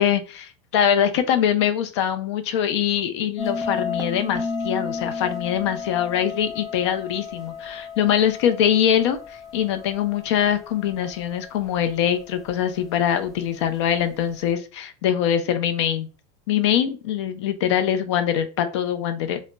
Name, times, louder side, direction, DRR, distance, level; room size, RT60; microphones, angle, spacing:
voice 1, 0.0-16.1 16.5-19.4, left 9 dB, 80° left, 9 dB, 0.5 m, -23 dB
sound 1, 3.4-12.7, left 5 dB, ahead, 0.6 m, -33 dB
2.2 x 2.1 x 3.8 m, 0.33 s
supercardioid pair, 140°, 14 cm